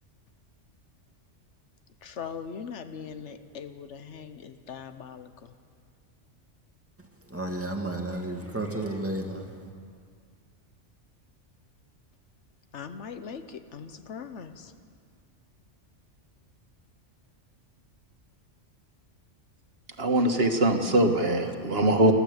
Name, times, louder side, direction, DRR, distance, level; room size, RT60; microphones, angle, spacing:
voice 1, 2.0-5.3 12.7-14.5, left 6 dB, 75° left, 10 dB, 1.2 m, -40 dB
voice 2, 7.3-9.5, right 1 dB, 10° right, 1 dB, 2.1 m, -32 dB
voice 3, 20.0-22.1, right 1 dB, 55° right, 4 dB, 1.7 m, -22 dB
29.0 x 11.5 x 8.1 m, 2.2 s
omnidirectional pair, 1.2 m